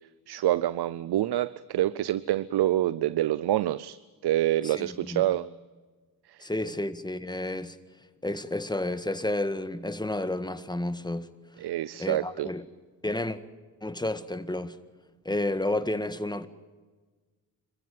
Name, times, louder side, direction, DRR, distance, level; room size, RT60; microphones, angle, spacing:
voice 1, 0.3-5.5 6.3-6.5 11.6-12.5, right 13 dB, 85° right, 0.6 m, -27 dB
voice 2, 4.6-5.2 6.4-7.8 8.2-11.3 12.0-12.6 13.0-13.4 13.8-14.8 15.3-16.5, left 1 dB, 10° left, 1.7 m, -31 dB
26.5 x 15.5 x 9.4 m
cardioid pair, 65°, 38 cm